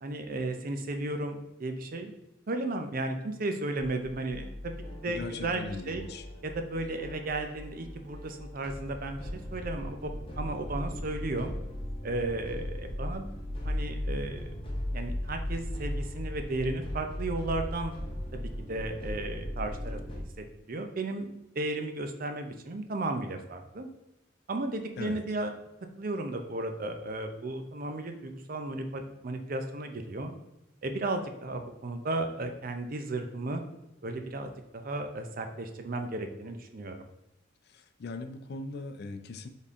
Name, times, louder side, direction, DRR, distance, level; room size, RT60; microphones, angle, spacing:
voice 1, 0.0-2.1 2.5-4.7 5.0-6.0 6.4-10.1 10.4-11.5 12.0-13.3 13.6-14.6 14.9-17.9 18.3-23.9 24.5-25.5 26.0-30.3 30.8-33.6 34.0-37.0, right 2 dB, 50° right, 6 dB, 0.5 m, -34 dB
sound 1, 3.8-20.2, left 1 dB, 30° left, 0.9 m, -37 dB
voice 2, 5.1-6.3 25.0-25.2 37.7-39.5, left 3 dB, 60° left, 7 dB, 0.5 m, -39 dB
4.1 x 3.6 x 3.5 m, 0.93 s
head